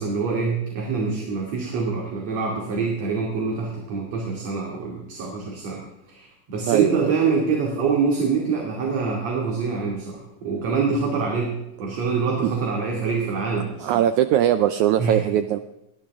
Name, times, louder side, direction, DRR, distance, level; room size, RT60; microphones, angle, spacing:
voice 1, 0.0-5.8 6.1-11.5 11.8-14.0 15.0-15.2, right 5 dB, 50° right, -1 dB, 3.4 m, -25 dB
voice 2, 6.7-7.1 12.4-12.5 13.8-15.6, right 11 dB, 90° right, 10 dB, 1.6 m, -20 dB
22.0 x 17.5 x 3.6 m, 0.90 s
omnidirectional pair, 4.2 m